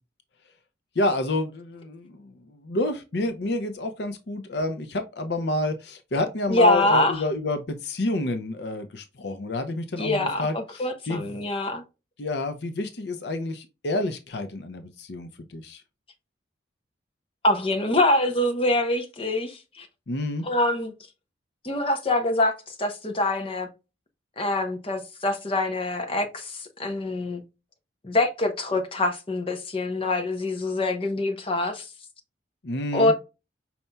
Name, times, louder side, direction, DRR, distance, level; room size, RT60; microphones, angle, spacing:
voice 1, 1.0-11.3 12.2-15.8 20.1-20.5 32.6-33.1, left 2 dB, 60° left, 0.6 m, -29 dB
voice 2, 6.5-7.2 10.0-11.8 17.4-19.9 20.4-20.9 21.6-23.7 24.4-27.4 28.0-31.9 32.9-33.1, left 2 dB, 30° left, 0.8 m, -25 dB
5.4 x 4.2 x 2.2 m
head